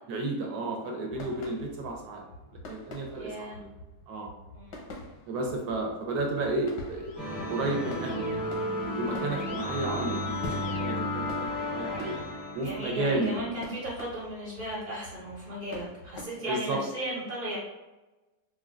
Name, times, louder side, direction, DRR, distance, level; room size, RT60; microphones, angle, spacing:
voice 1, 0.1-2.2 2.7-3.7 4.1-4.3 5.3-7.1 7.5-8.4 8.8-12.2 12.5-13.4 16.5-16.8, right 2 dB, 70° right, 1 dB, 1.1 m, -32 dB
sound 1, 1.1-16.2, left 1 dB, 90° left, 1.4 m, -46 dB
voice 2, 3.1-3.6 4.5-4.8 12.6-17.6, right 1 dB, 50° right, -7 dB, 1.1 m, -36 dB
Keyboard (musical), 6.8-13.4, left 6 dB, 70° left, 0.8 m, -40 dB
sound 2, 7.2-13.4, equal, ahead, 0.5 m, -34 dB
4.3 x 2.2 x 2.4 m, 1.1 s
omnidirectional pair, 1.8 m